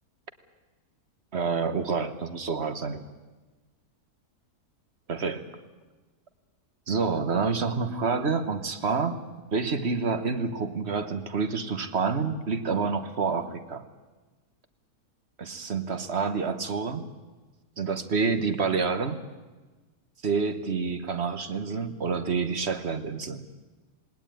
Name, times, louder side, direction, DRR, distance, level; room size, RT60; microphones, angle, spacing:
voice 1, 1.3-3.0 5.1-5.5 6.9-9.2 9.5-13.9 15.4-17.0 17.8-19.2 20.2-23.4, right 4 dB, 45° right, 11 dB, 1.4 m, -28 dB
19.5 x 19.0 x 9.1 m, 1.2 s
omnidirectional pair, 1.7 m